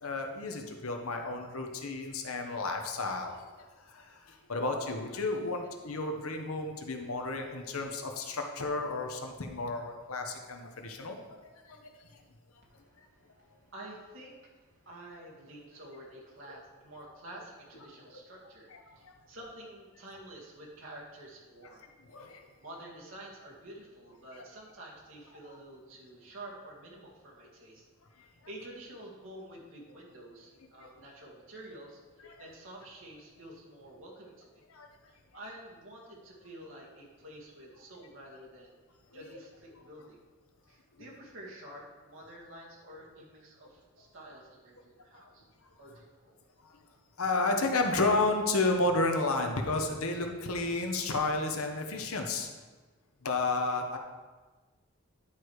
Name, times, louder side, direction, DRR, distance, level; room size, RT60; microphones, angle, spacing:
voice 1, 0.0-3.5 3.8-11.2 11.4-11.9 16.5-16.6 18.7-19.2 22.1-22.4 28.2-28.3 30.8-30.9 32.2-32.4 34.7-34.9 46.6-46.8 47.2-52.5 53.2-54.0, left 2 dB, 80° left, 3 dB, 1.0 m, -32 dB
voice 2, 12.6-18.7 19.0-21.8 22.3-27.8 28.2-32.0 32.4-34.6 35.1-38.8 39.1-40.2 40.7-45.4 45.8-46.4, right 1 dB, 65° right, -4 dB, 2.2 m, -49 dB
10.0 x 4.7 x 4.8 m, 1.3 s
head